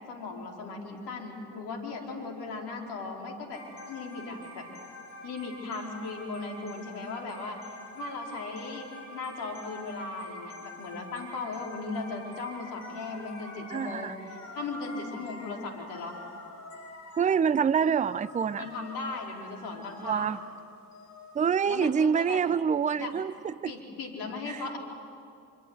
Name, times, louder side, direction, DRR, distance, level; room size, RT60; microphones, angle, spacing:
voice 1, 0.1-3.6 3.9-4.6 5.2-7.6 7.9-14.1 14.5-16.1 18.6-20.3 21.7-22.4 23.0-23.1 23.6-24.8, left 3 dB, 60° left, 4.5 m, -37 dB
sound 1, 3.5-21.9, left 1 dB, 40° left, 5.4 m, -46 dB
voice 2, 13.7-14.2 17.2-18.7 20.0-20.4 21.3-23.7 24.5-24.6, right 7 dB, 15° right, 0.6 m, -26 dB
26.0 x 25.0 x 8.0 m
figure-of-eight pair, 50°, 43 cm